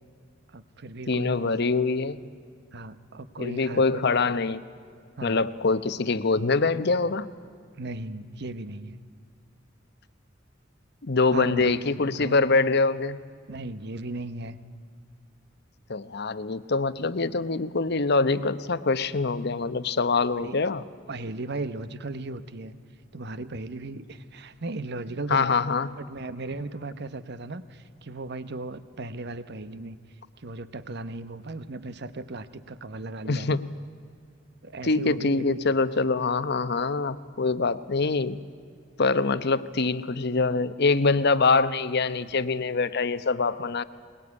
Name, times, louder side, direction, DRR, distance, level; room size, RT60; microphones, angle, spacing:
voice 1, 0.5-1.5 2.7-4.1 5.2-5.4 7.8-9.0 11.3-12.4 13.5-14.6 20.4-20.6 21.1-22.7 23.1-25.5 26.0-30.0 30.4-33.6 34.6-35.6, right 2 dB, 60° right, 13 dB, 1.1 m, -36 dB
voice 2, 1.1-2.3 3.4-4.6 5.2-7.3 11.0-13.2 15.9-20.8 25.3-26.0 33.2-33.8 34.8-38.4 39.0-43.8, left 3 dB, 60° left, 13 dB, 0.9 m, -24 dB
22.5 x 20.5 x 9.7 m, 2.2 s
head